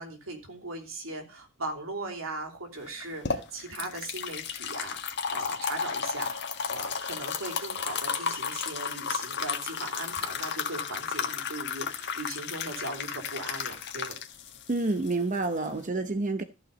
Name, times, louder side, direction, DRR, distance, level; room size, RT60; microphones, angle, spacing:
voice 1, 0.0-14.2, right 2 dB, 80° right, 3.1 m, -39 dB
sound 1, 2.9-15.8, left 6 dB, 55° left, 1.6 m, -33 dB
voice 2, 14.7-16.4, right 2 dB, 40° right, 0.8 m, -28 dB
14.5 x 5.8 x 5.3 m
head